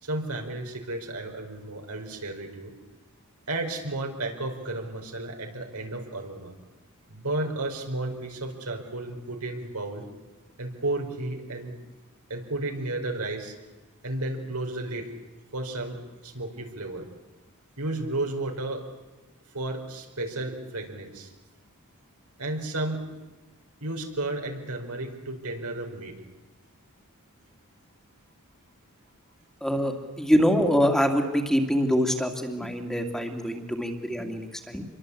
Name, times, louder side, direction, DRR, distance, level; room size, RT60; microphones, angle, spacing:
voice 1, 0.0-2.7 3.5-6.5 7.1-10.0 10.6-11.8 12.3-13.5 14.0-15.1 15.5-17.0 17.8-18.8 19.5-21.3 22.4-23.0 23.8-26.2, right 2 dB, 80° right, 3 dB, 4.6 m, -33 dB
voice 2, 29.6-34.8, equal, ahead, 3 dB, 2.5 m, -25 dB
27.0 x 23.0 x 8.5 m, 1.1 s
head